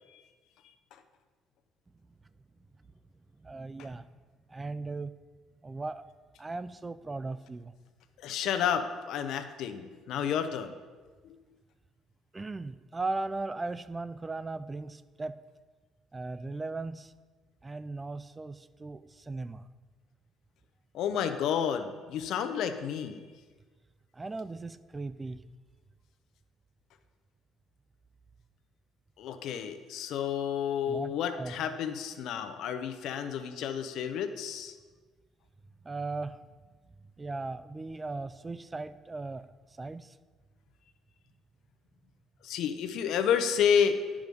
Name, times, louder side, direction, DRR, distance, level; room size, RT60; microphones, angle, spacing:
voice 1, 3.4-4.1 4.5-5.1 5.6-6.0 6.4-7.7 12.3-15.4 16.1-17.1 17.6-19.7 24.1-25.4 30.9-31.6 35.8-36.4 37.2-39.5 39.8-40.2, right 3 dB, 20° right, 14 dB, 0.3 m, -37 dB
voice 2, 8.2-10.7 11.2-11.3 20.9-23.2 29.2-34.7 42.4-44.0, left 8 dB, 70° left, 8 dB, 0.7 m, -30 dB
10.5 x 4.9 x 5.3 m, 1.4 s
cardioid pair, 125°, 0 cm